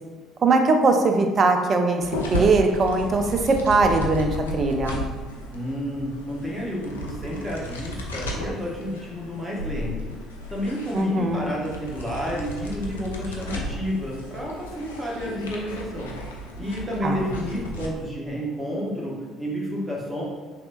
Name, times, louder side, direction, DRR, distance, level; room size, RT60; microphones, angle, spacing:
voice 1, 0.4-2.0 2.3-5.0 10.9-11.5 17.0-17.3, right 3 dB, 35° right, 4 dB, 0.4 m, -20 dB
sound 1, 2.0-17.9, equal, 75° left, 0.3 m, -34 dB
voice 2, 5.5-10.1 10.5-16.1 16.6-20.2, equal, 10° right, -4 dB, 1.0 m, -30 dB
3.2 x 2.7 x 2.5 m, 1.3 s
figure-of-eight pair, 55°, 0 cm